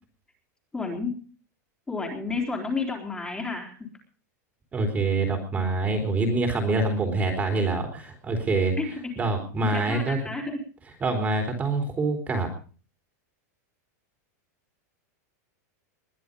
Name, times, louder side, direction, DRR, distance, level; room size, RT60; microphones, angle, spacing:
voice 1, 0.7-1.1 1.9-3.7 8.8-8.9 9.7-10.6, left 3 dB, 10° left, 1 dB, 3.7 m, -31 dB
voice 2, 4.7-8.8 9.2-10.2 11.0-12.5, right 3 dB, 15° right, 5 dB, 3.7 m, -25 dB
21.0 x 11.0 x 5.3 m, 0.39 s
supercardioid pair, 155°, 9 cm